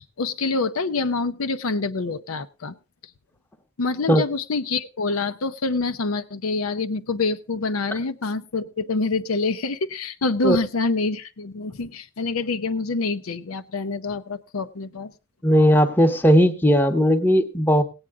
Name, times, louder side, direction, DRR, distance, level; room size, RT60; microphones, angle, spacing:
voice 1, 0.0-2.7 3.8-15.1, left 3 dB, 85° left, 11 dB, 0.7 m, -26 dB
voice 2, 15.4-17.8, equal, 10° left, 5 dB, 0.9 m, -17 dB
17.0 x 8.9 x 3.6 m, 0.30 s
head